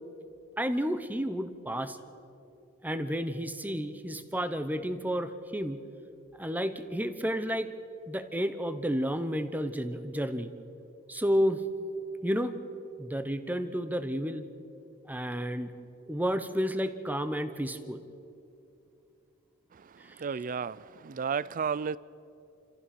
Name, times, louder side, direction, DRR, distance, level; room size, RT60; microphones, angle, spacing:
voice 1, 0.6-2.0 2.8-5.8 6.4-7.7 8.1-10.5 11.1-11.6 12.2-12.5 13.0-14.4 15.1-15.7 16.1-18.0, equal, 10° right, 10 dB, 0.9 m, -31 dB
voice 2, 20.2-22.0, right 6 dB, 40° right, 20 dB, 0.4 m, -32 dB
28.5 x 15.0 x 6.0 m, 2.7 s
head